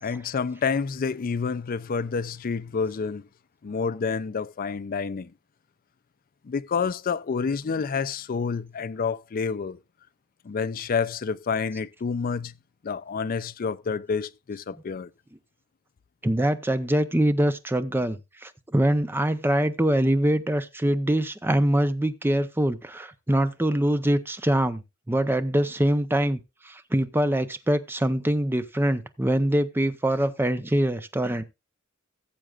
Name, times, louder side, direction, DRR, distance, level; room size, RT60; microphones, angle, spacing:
voice 1, 0.0-3.2 3.6-5.3 6.4-9.8 10.4-12.5 12.8-15.1, left 5 dB, 45° left, 0.4 m, -28 dB
voice 2, 16.2-24.8 25.1-26.4 26.6-31.4, right 1 dB, 10° right, 0.6 m, -24 dB
17.0 x 7.6 x 2.4 m
head